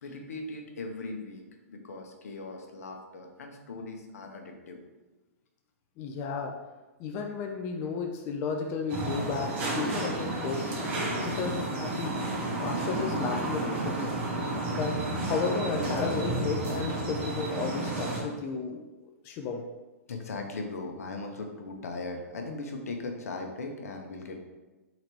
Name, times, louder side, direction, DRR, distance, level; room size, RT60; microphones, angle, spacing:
voice 1, 0.0-4.8 20.1-24.4, left 3 dB, 80° left, 3 dB, 0.8 m, -39 dB
voice 2, 6.0-6.6 7.0-10.7 11.1-12.2 12.6-14.0 14.7-18.9 19.2-19.6, left 5 dB, 35° left, 2 dB, 0.5 m, -33 dB
sound 1, 8.9-18.2, right 2 dB, 45° right, 1.4 m, -31 dB
3.9 x 3.0 x 4.5 m, 1.2 s
hypercardioid pair, 130°, 8 cm